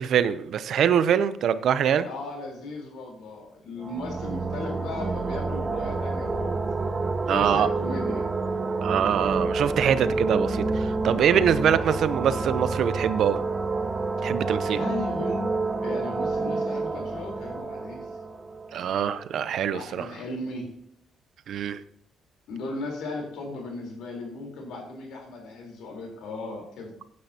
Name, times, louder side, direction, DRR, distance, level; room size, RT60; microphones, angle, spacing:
voice 1, 0.0-2.1 7.3-7.7 8.8-13.4 14.2-14.8 18.7-20.1 21.5-21.8, right 8 dB, 70° right, 14 dB, 0.6 m, -24 dB
voice 2, 2.0-6.9 7.3-8.3 14.7-15.4 15.8-18.1 19.7-20.7 22.5-26.9, left 2 dB, 85° left, 0 dB, 3.8 m, -36 dB
sound 1, 3.8-19.3, right 3 dB, 30° right, 0.8 m, -29 dB
16.0 x 9.5 x 2.9 m, 0.70 s
cardioid pair, 90°, 0 cm